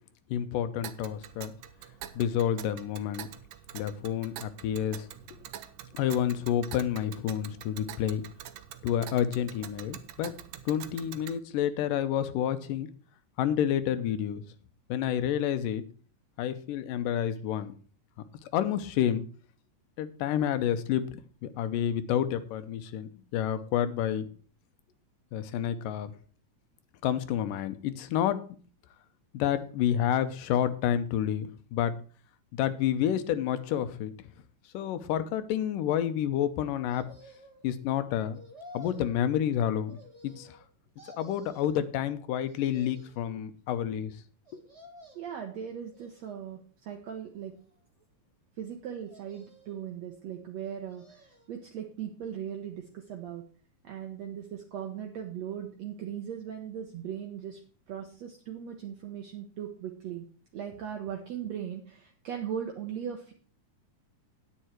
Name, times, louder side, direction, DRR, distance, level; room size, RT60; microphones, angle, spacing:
voice 1, 0.3-1.5 2.2-3.3 3.7-5.1 5.9-8.2 8.8-10.4 10.7-12.9 13.4-14.4 14.9-15.8 16.4-17.7 18.5-19.2 20.0-24.3 25.3-26.1 27.0-28.4 29.3-31.9 32.5-34.1 34.7-37.1 37.6-38.4 38.7-40.0 40.2-40.6 41.2-44.1, left 10 dB, 85° left, 11 dB, 2.4 m, -29 dB
Tick, 0.8-11.4, right 12 dB, 80° right, 2.3 m, -46 dB
sound 1, 36.9-37.7 38.3-39.2 39.9-40.7 41.0-41.8 42.4-43.3 44.5-45.4 45.9-46.6 47.2-48.0 49.0-49.9 50.6-51.5 51.9-52.0, equal, 20° right, 0.9 m, -53 dB
voice 2, 45.2-47.5 48.6-53.5 53.8-57.6 57.9-60.3 60.5-63.3, right 9 dB, 65° right, 3 dB, 2.0 m, -38 dB
9.6 x 9.1 x 4.4 m, 0.41 s
omnidirectional pair, 3.7 m